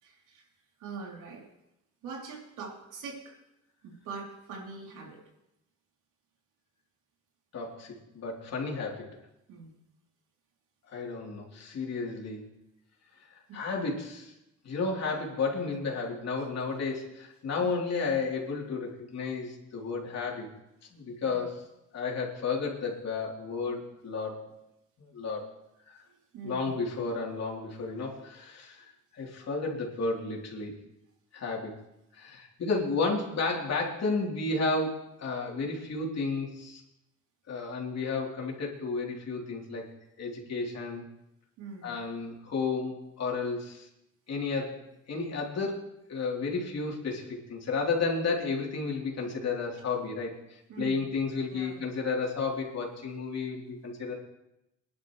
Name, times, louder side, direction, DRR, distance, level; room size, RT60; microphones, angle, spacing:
voice 1, 0.0-0.4 0.8-1.5 2.0-3.3 3.8-5.2 9.5-9.7 13.5-13.6 17.6-17.8 21.2-21.4 26.1-26.8 41.6-42.0 50.7-51.0 51.5-51.8, right 4 dB, 90° right, -1 dB, 3.2 m, -43 dB
voice 2, 7.5-9.2 10.9-12.4 13.3-14.3 14.6-20.5 20.9-21.7 21.9-24.6 25.0-25.5 25.9-26.0 26.4-28.8 29.1-30.7 31.3-31.7 32.1-36.8 37.5-39.9 40.2-41.0 41.8-43.9 44.3-54.1, left 4 dB, 60° left, -1 dB, 3.4 m, -32 dB
21.5 x 11.0 x 3.2 m, 0.87 s
cardioid pair, 90°, 30 cm